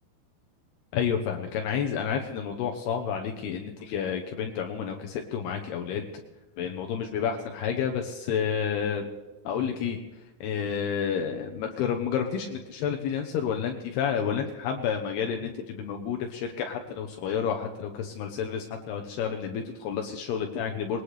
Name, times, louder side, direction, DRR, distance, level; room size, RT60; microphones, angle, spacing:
voice 1, 0.9-6.1 6.6-9.1 9.4-10.0 10.4-21.0, left 7 dB, 75° left, 3 dB, 2.8 m, -30 dB
21.0 x 19.5 x 3.3 m, 1.1 s
omnidirectional pair, 4.9 m